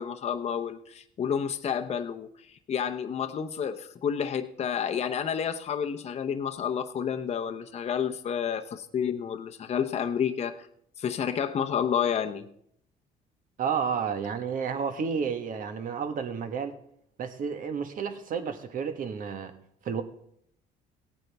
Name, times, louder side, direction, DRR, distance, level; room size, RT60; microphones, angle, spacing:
voice 1, 0.0-2.3 2.7-10.6 11.0-12.5, left 8 dB, 40° left, 6 dB, 0.8 m, -30 dB
voice 2, 13.6-16.7 17.2-19.5 19.8-20.0, right 6 dB, 55° right, 8 dB, 1.4 m, -31 dB
17.0 x 9.1 x 3.5 m, 0.70 s
cardioid pair, 110°, 17 cm